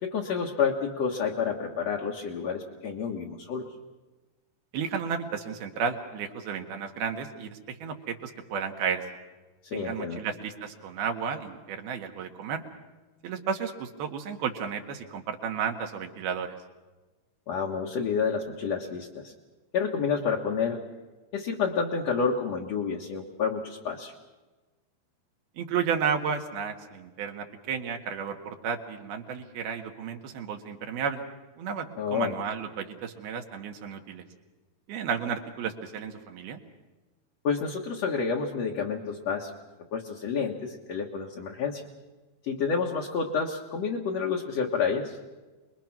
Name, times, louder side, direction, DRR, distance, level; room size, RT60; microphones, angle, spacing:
voice 1, 0.0-3.7 9.6-10.2 17.5-19.3 19.7-20.8 21.3-24.1 32.0-32.3 37.4-39.5 39.9-41.8 42.4-45.2, left 6 dB, 55° left, -1 dB, 2.1 m, -29 dB
voice 2, 4.7-9.0 9.7-12.6 13.2-16.5 25.6-31.2 31.6-34.2 34.9-36.6, right 6 dB, 70° right, 4 dB, 3.4 m, -33 dB
27.0 x 22.0 x 6.0 m, 1.2 s
omnidirectional pair, 4.7 m